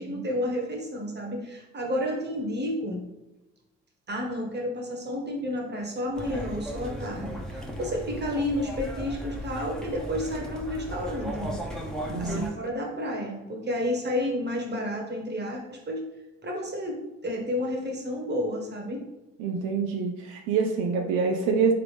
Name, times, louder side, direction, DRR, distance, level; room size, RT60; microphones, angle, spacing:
voice 1, 0.0-3.0 4.1-11.5 12.2-16.0 16.4-19.0, left 1 dB, 35° right, -1 dB, 1.3 m, -31 dB
sound 1, 6.1-12.5, equal, ahead, 0.9 m, -36 dB
voice 2, 12.1-12.5 19.4-21.7, right 5 dB, 80° right, 3 dB, 0.5 m, -26 dB
3.6 x 3.4 x 3.3 m, 1.0 s
supercardioid pair, 55°, 30 cm